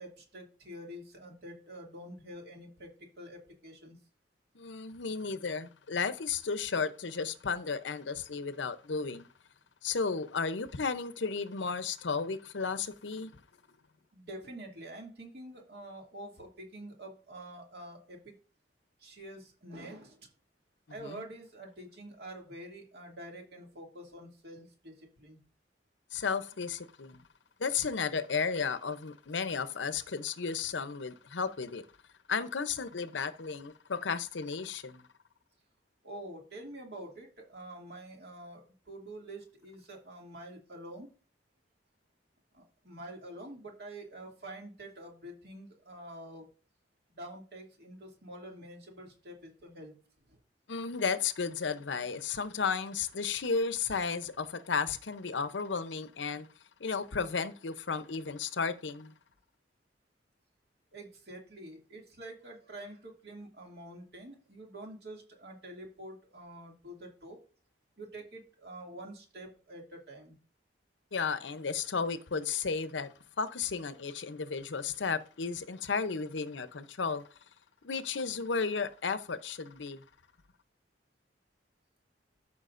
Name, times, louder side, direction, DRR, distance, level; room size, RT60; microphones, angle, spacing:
voice 1, 0.0-4.0 14.1-18.4 19.0-20.3 20.9-25.4 36.0-41.1 42.5-46.4 47.1-49.9 50.3-50.4 60.9-67.4 68.0-70.4, right 1 dB, 60° right, 2.4 m, -47 dB
voice 2, 4.5-9.3 9.8-13.4 21.0-21.2 26.1-27.2 27.6-31.9 32.3-35.0 50.7-56.5 56.8-59.1 71.1-77.2 77.8-80.0, left 5 dB, 90° left, 0.7 m, -33 dB
13.5 x 5.9 x 2.5 m
head